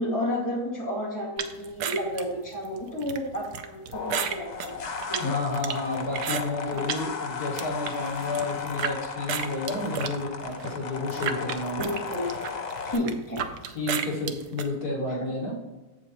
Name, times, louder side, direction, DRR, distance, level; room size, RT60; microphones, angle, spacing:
voice 1, 0.0-4.8 5.1-5.3 6.6-6.9 11.8-12.3 12.8-13.4 15.1-15.2, equal, 10° left, -4 dB, 1.9 m, -31 dB
sound 1, 1.4-7.0 7.4-8.9 9.3-14.7, right 8 dB, 80° right, 1.2 m, -33 dB
sound 2, 3.9-12.9, left 5 dB, 55° left, 0.4 m, -35 dB
voice 2, 5.2-11.9 13.7-15.5, left 2 dB, 75° left, -3 dB, 2.4 m, -31 dB
7.8 x 7.8 x 3.0 m, 1.2 s
omnidirectional pair, 1.7 m